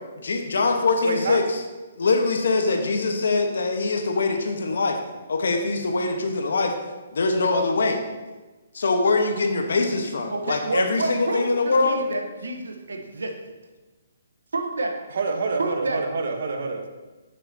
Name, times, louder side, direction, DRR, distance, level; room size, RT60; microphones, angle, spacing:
voice 1, 0.2-1.4 2.0-5.0 5.3-6.7 7.1-8.0 8.7-12.0, left 3 dB, 75° left, 4 dB, 1.0 m, -23 dB
voice 2, 1.0-1.4 15.1-16.8, right 3 dB, 65° right, 4 dB, 1.0 m, -27 dB
voice 3, 10.3-13.3 14.5-14.9 15.6-16.0, right 2 dB, 90° right, 3 dB, 1.0 m, -28 dB
7.5 x 6.5 x 2.7 m, 1.2 s
hypercardioid pair, 150°, 0 cm